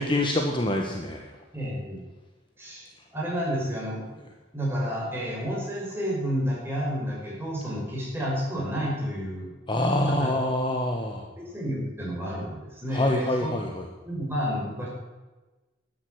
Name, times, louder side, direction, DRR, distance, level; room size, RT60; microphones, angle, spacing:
voice 1, 0.0-1.3 9.7-11.3 12.9-13.9, left 1 dB, 25° left, 2 dB, 1.3 m, -26 dB
voice 2, 1.5-2.0 2.6-4.0 4.5-9.5 10.1-10.3 11.5-13.5 14.0-14.9, equal, 10° right, -4 dB, 5.6 m, -30 dB
13.0 x 10.0 x 7.8 m, 1.2 s
head